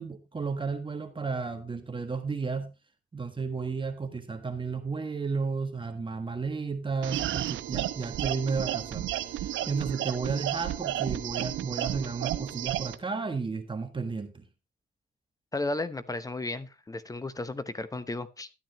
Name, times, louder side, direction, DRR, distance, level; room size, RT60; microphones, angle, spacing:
voice 1, 0.0-2.7 3.1-14.4, right 4 dB, 25° right, 7 dB, 1.4 m, -33 dB
sound 1, 7.0-13.0, right 13 dB, 80° right, 0.8 m, -32 dB
voice 2, 15.5-18.5, left 2 dB, 15° left, 14 dB, 0.9 m, -34 dB
12.5 x 9.1 x 3.1 m, 0.26 s
cardioid pair, 90°, 20 cm